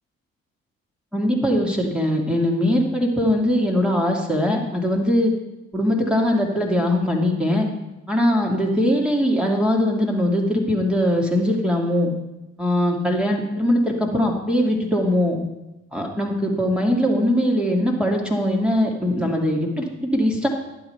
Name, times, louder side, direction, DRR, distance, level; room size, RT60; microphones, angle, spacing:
voice 1, 1.1-5.3 5.7-7.7 8.1-12.1 12.6-15.4 15.9-20.5, left 1 dB, ahead, -2 dB, 2.4 m, -21 dB
11.5 x 7.9 x 4.6 m, 0.98 s
figure-of-eight pair, 45°, 40 cm